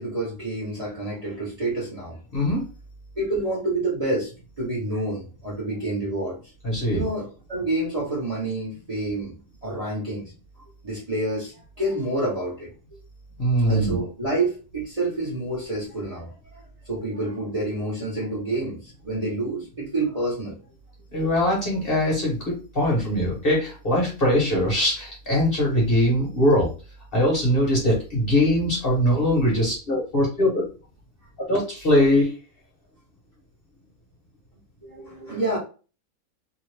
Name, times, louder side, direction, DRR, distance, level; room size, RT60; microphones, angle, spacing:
voice 1, 0.0-2.2 3.2-4.3 4.6-6.4 6.9-9.3 9.6-10.2 10.8-12.7 13.7-16.3 16.9-20.5 34.8-35.6, right 2 dB, 30° right, -6 dB, 1.0 m, -28 dB
voice 2, 2.3-2.6 6.6-7.1 13.4-14.0 21.1-26.7 27.1-30.6 31.5-32.3, left 1 dB, 45° left, -3 dB, 1.2 m, -21 dB
2.8 x 2.5 x 3.1 m, 0.34 s
omnidirectional pair, 1.5 m